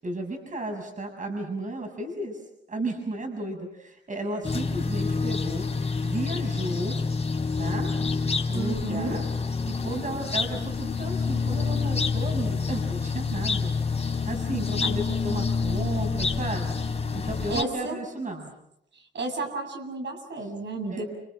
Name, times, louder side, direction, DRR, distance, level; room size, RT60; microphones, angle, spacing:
voice 1, 0.0-2.4 2.7-5.7 6.0-7.0 7.6-7.9 8.5-9.2 9.7-13.7 14.0-16.7 17.1-18.5 20.9-21.0, right 1 dB, 40° right, 3 dB, 6.9 m, -34 dB
sound 1, 4.4-17.6, left 4 dB, 35° left, 3.9 m, -28 dB
voice 2, 8.5-9.2 14.8-14.9 17.5-18.0 18.9-21.0, right 3 dB, 70° right, 3 dB, 7.9 m, -32 dB
30.0 x 28.0 x 6.4 m, 0.79 s
wide cardioid pair, 105°, 19 cm